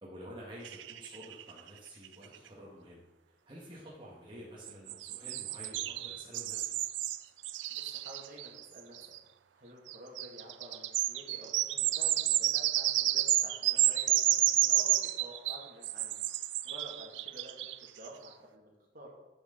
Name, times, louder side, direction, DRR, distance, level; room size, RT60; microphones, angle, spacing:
voice 1, 0.0-3.0 3.5-6.7, equal, 30° right, -5 dB, 1.5 m, -49 dB
sound 1, 0.6-1.7 2.0-2.1 2.3-2.4 4.7-9.2 9.9-18.1, right 14 dB, 85° right, 0.4 m, -31 dB
voice 2, 7.7-8.9 9.5-19.1, right 1 dB, 50° right, -1 dB, 2.2 m, -50 dB
10.0 x 6.4 x 3.9 m, 1.1 s
head